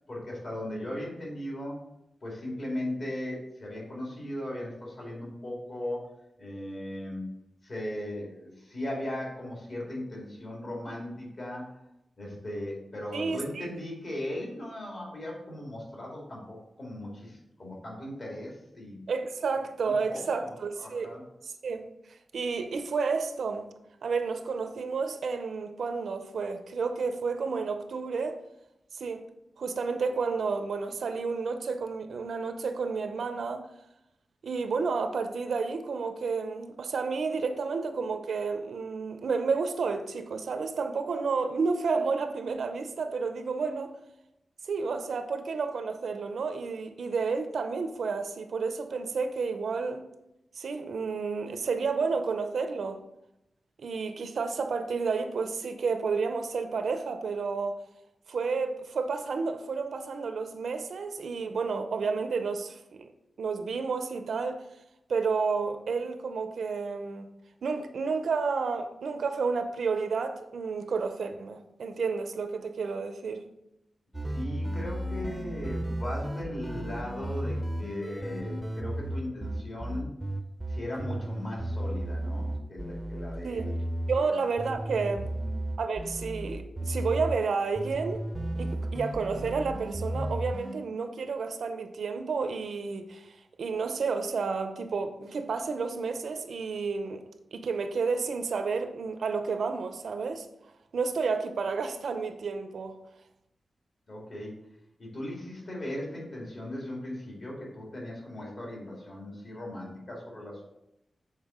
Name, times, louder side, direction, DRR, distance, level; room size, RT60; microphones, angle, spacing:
voice 1, 0.1-1.8 2.2-6.0 6.4-7.3 7.6-11.6 12.2-19.0 19.8-20.5 20.8-21.2 74.2-80.1 80.7-83.8 84.2-84.3 85.4-85.6 104.1-104.5 105.0-110.6, left 1 dB, 50° left, 2.1 m, -38 dB
voice 2, 13.1-13.7 19.1-21.2 21.4-21.9 22.3-23.7 24.0-28.4 28.9-29.2 29.6-33.7 34.4-43.9 44.7-50.0 50.5-53.0 53.8-57.8 58.3-63.1 63.4-64.6 65.1-67.3 67.6-73.4 83.4-83.7 84.1-85.3 85.8-88.3 88.6-97.2 97.5-100.5 100.9-103.0, right 4 dB, 75° right, 0.5 m, -31 dB
sound 1, 74.1-84.2 84.6-87.4 87.8-90.7, right 1 dB, 10° right, 0.6 m, -34 dB
7.2 x 4.1 x 3.6 m
wide cardioid pair, 155°, 0 cm